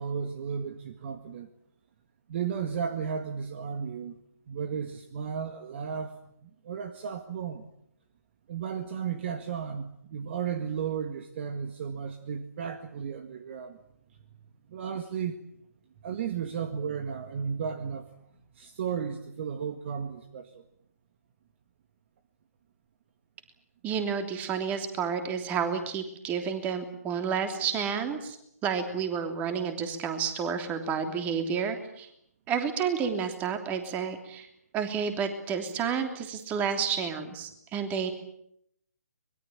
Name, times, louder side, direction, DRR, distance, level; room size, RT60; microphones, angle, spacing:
voice 1, 0.0-1.5 2.3-4.2 4.5-6.2 6.4-7.6 8.5-13.8 14.7-15.4 16.0-18.1 18.6-20.6, right 7 dB, 40° right, 9 dB, 1.8 m, -34 dB
voice 2, 23.8-28.4 28.6-32.1 32.5-34.5 34.7-38.1, right 6 dB, 15° right, 7 dB, 3.2 m, -30 dB
25.0 x 21.5 x 8.8 m, 0.72 s
figure-of-eight pair, 140°, 9 cm